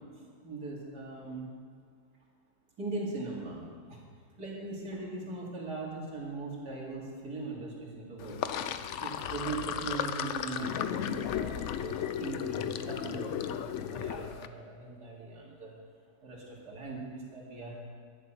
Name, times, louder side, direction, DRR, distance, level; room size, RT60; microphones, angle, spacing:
voice 1, 0.4-1.5 2.8-3.6 3.9-4.0 4.4-8.4 9.0-15.7 16.2-17.8, right 3 dB, 65° right, -4 dB, 3.1 m, -40 dB
Sink (filling or washing), 8.2-14.5, left 9 dB, 85° left, 0.6 m, -35 dB
11.5 x 10.5 x 5.8 m, 2.1 s
omnidirectional pair, 1.9 m